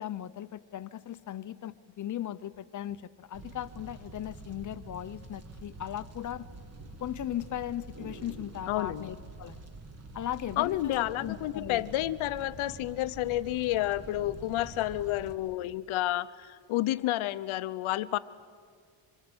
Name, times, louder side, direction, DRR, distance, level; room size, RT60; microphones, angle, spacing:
voice 1, 0.0-6.5 7.0-9.6 10.1-11.9, left 11 dB, 40° left, 14 dB, 0.7 m, -37 dB
sound 1, 1.9-2.0 2.5-4.0 4.7-4.9 5.2-5.7 6.0-8.9 10.0-10.5 10.8-13.1 13.4-13.5 13.8-15.0 15.6-15.7, right 2 dB, 50° right, 2.3 m, -54 dB
Fire, 3.3-15.3, right 2 dB, 30° right, 1.5 m, -47 dB
voice 2, 8.7-9.1 10.6-18.2, left 15 dB, 85° left, 14 dB, 0.8 m, -30 dB
25.0 x 22.5 x 7.9 m, 2.1 s
cardioid pair, 150°, 47 cm